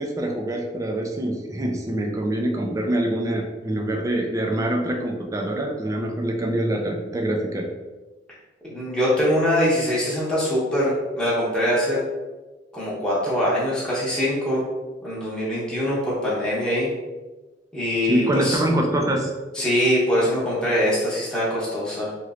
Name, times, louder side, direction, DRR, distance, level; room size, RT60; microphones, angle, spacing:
voice 1, 0.0-7.7 18.1-19.3, right 1 dB, 20° right, 1 dB, 0.4 m, -25 dB
voice 2, 8.6-12.0 12.7-14.6 15.0-16.9 17.7-18.6 19.5-22.1, equal, 5° left, -8 dB, 0.9 m, -23 dB
3.0 x 3.0 x 2.4 m, 1.2 s
head